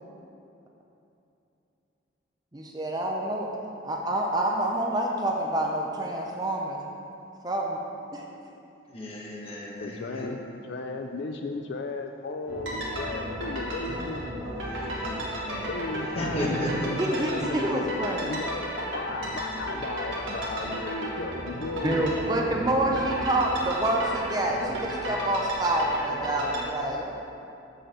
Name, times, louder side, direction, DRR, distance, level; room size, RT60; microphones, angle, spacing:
voice 1, 2.5-3.5 3.8-6.8 7.4-7.8 8.1-8.2 17.0-18.3 21.8-27.3, right 1 dB, 20° right, 0 dB, 0.5 m, -27 dB
voice 2, 8.9-10.3 14.4-15.2 15.5-15.7 16.2-16.9, equal, 30° left, -4 dB, 1.2 m, -34 dB
voice 3, 9.8-14.3 14.9-15.2 15.5-22.1, left 3 dB, 60° left, 4 dB, 0.4 m, -35 dB
sound 1, 12.5-26.7, equal, 85° right, 1.6 m, -33 dB
7.7 x 4.1 x 6.6 m, 2.7 s
head